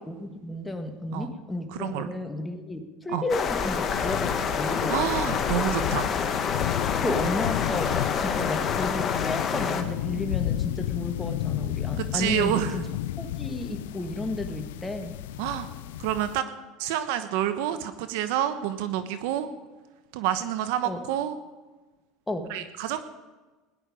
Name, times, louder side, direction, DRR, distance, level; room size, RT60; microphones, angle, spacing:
voice 1, 0.1-5.1 7.0-12.9 13.2-15.2 20.8-21.0 22.3-22.6, left 2 dB, 10° left, 6 dB, 1.7 m, -33 dB
voice 2, 1.7-2.1 3.1-3.2 4.9-6.1 12.0-12.7 15.4-15.7 16.0-16.4 16.8-19.5 20.1-21.4 22.5-23.0, right 11 dB, 75° right, 11 dB, 1.0 m, -28 dB
sound 1, 3.3-9.8, left 6 dB, 35° left, 1.5 m, -27 dB
sound 2, 3.9-16.4, left 14 dB, 80° left, 0.5 m, -33 dB
18.0 x 11.0 x 5.0 m, 1.2 s
supercardioid pair, 100°, 0 cm